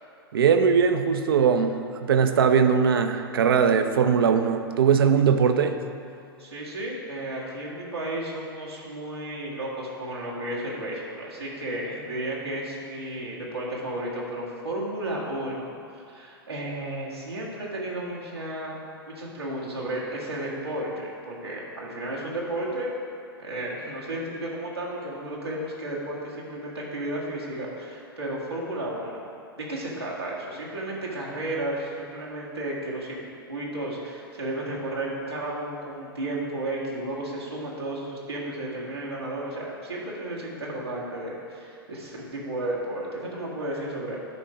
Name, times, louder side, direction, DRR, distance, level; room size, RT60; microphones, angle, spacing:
voice 1, 0.3-5.8, right 6 dB, 65° right, 8 dB, 0.6 m, -20 dB
voice 2, 6.4-15.7 16.1-18.8 19.1-22.9 23.4-29.3 29.6-44.2, right 1 dB, 85° right, -6 dB, 2.0 m, -33 dB
11.0 x 4.6 x 5.0 m, 2.5 s
figure-of-eight pair, 100°, 13 cm